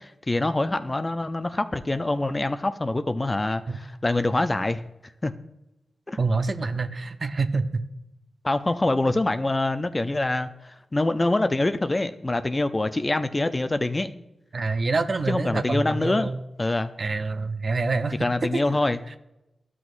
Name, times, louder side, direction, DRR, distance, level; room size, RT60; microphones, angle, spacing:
voice 1, 0.0-4.8 5.2-5.3 6.1-6.2 8.4-14.1 15.3-16.3 16.6-16.9 18.2-19.0, left 2 dB, 30° left, 10 dB, 0.5 m, -25 dB
voice 2, 6.2-7.8 14.5-16.3 17.0-18.2 18.5-18.8, right 3 dB, 55° right, 8 dB, 0.6 m, -26 dB
12.0 x 6.1 x 2.5 m, 0.91 s
cardioid pair, 45°, 0 cm